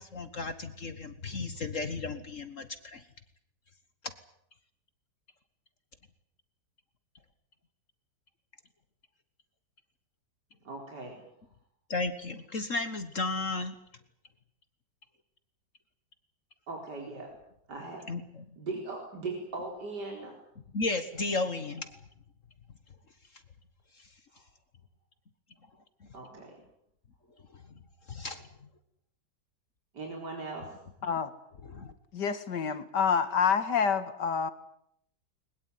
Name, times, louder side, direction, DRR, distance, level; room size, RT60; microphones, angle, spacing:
voice 1, 0.0-3.0 11.9-13.8 18.1-18.5 20.7-22.0 24.0-24.1 27.5-27.6 28.1-28.4 31.7-31.9, left 3 dB, 45° left, 11 dB, 1.7 m, -34 dB
voice 2, 10.6-11.2 16.7-17.3 17.7-18.0 18.6-20.3 24.3-24.4 26.1-26.6 29.9-30.8, right 3 dB, 65° right, 1 dB, 4.8 m, -39 dB
voice 3, 32.1-34.5, left 6 dB, 65° left, 12 dB, 2.3 m, -27 dB
21.5 x 21.0 x 9.4 m, 0.73 s
omnidirectional pair, 2.0 m